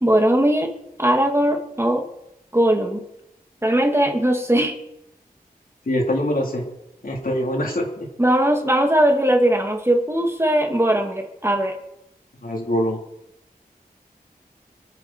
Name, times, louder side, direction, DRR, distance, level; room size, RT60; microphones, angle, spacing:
voice 1, 0.0-0.7 1.0-2.1 2.5-3.0 3.6-4.8 8.2-11.8, right 1 dB, 15° right, 2 dB, 2.6 m, -19 dB
voice 2, 5.8-6.6 7.0-8.1 12.4-13.0, left 1 dB, 65° left, -1 dB, 4.3 m, -23 dB
27.0 x 9.9 x 4.7 m, 0.87 s
wide cardioid pair, 55°, 16 cm